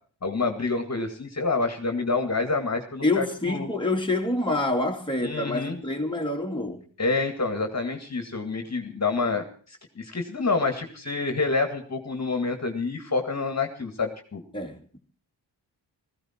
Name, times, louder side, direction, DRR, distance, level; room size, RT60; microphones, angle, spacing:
voice 1, 0.2-3.7 5.2-5.8 7.0-14.4, left 3 dB, 35° left, 2.1 m, -28 dB
voice 2, 3.0-6.8 14.5-15.0, left 2 dB, 10° left, 2.6 m, -27 dB
17.0 x 15.5 x 4.4 m
wide cardioid pair, 115°, 45 cm